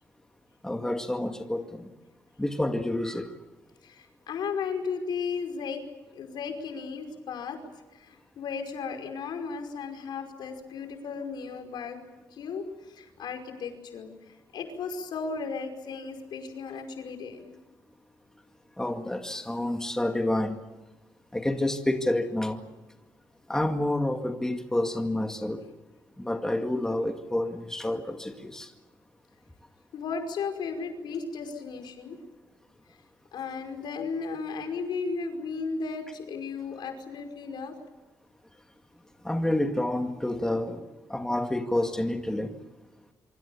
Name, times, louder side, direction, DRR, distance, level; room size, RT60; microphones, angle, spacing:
voice 1, 0.6-1.9 2.4-3.3 18.8-20.6 21.3-22.6 23.5-25.6 26.2-28.7 39.2-40.8 41.1-42.5, left 1 dB, 5° left, 5 dB, 2.1 m, -28 dB
voice 2, 3.8-5.8 6.1-7.6 7.9-12.0 12.3-17.6 29.9-32.2 33.3-37.8, left 5 dB, 80° left, 5 dB, 5.2 m, -35 dB
26.0 x 25.0 x 7.1 m, 1.2 s
cardioid pair, 115°, 8 cm